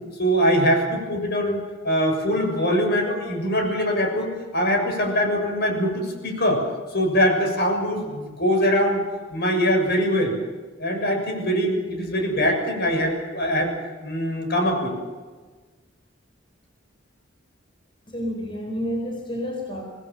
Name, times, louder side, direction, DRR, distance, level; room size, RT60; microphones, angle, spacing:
voice 1, 0.2-1.6 1.8-6.6 6.9-9.0 9.3-10.3 10.8-13.7 14.0-14.9, equal, 55° left, 3 dB, 6.8 m, -22 dB
voice 2, 18.1-19.9, equal, 25° left, 1 dB, 4.2 m, -29 dB
26.0 x 19.0 x 7.5 m, 1.4 s
head